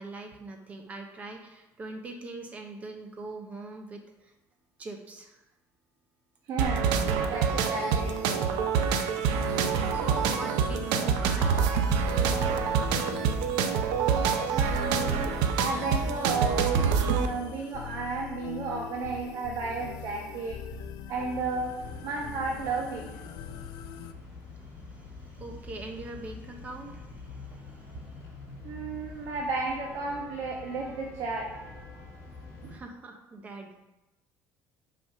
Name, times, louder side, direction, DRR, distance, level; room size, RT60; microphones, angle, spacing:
voice 1, 0.0-4.3 4.8-5.4 9.7-11.7 17.5-17.7 25.2-28.0 32.7-33.8, right 2 dB, 20° right, 4 dB, 0.8 m, -42 dB
voice 2, 6.5-6.9 7.3-8.2 14.5-20.6 21.1-21.7 22.0-23.0 28.6-31.5 32.6-32.7, right 3 dB, 50° right, -1 dB, 1.0 m, -33 dB
sound 1, 6.6-17.3, right 6 dB, 80° right, 0.7 m, -26 dB
sound 2, 7.9-24.1, left 7 dB, 70° left, 0.5 m, -42 dB
sound 3, 21.1-32.8, left 3 dB, 30° left, 2.9 m, -46 dB
5.9 x 5.2 x 5.6 m, 0.97 s
cardioid pair, 175°, 7 cm